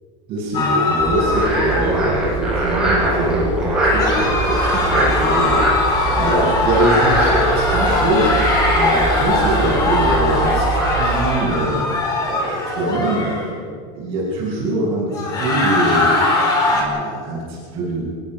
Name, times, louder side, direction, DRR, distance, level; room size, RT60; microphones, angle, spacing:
voice 1, 0.3-11.8 12.2-13.6 13.9-18.0, right 1 dB, 35° right, -8 dB, 6.7 m, -23 dB
sound 1, 0.5-2.1 3.8-13.5 15.1-16.8, left 2 dB, 25° left, 4.0 m, -20 dB
Frog, 1.0-11.3, right 2 dB, 5° right, 6.3 m, -21 dB
29.5 x 16.0 x 6.0 m, 2.1 s
supercardioid pair, 180°, 16 cm